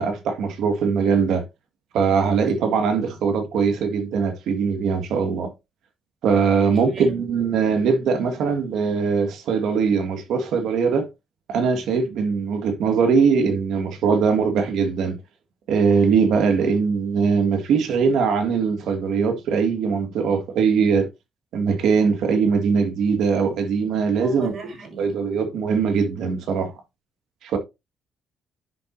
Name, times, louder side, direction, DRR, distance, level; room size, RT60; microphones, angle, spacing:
voice 1, 0.0-1.4 1.9-5.5 6.2-11.1 11.5-15.2 15.7-21.1 21.5-24.5 25.0-26.7 27.4-27.6, right 5 dB, 80° right, 1.8 m, -21 dB
voice 2, 2.6-2.9 6.8-7.5 24.2-25.1, right 4 dB, 55° right, 5.2 m, -37 dB
10.0 x 5.9 x 2.7 m
cardioid pair, 90°, 0 cm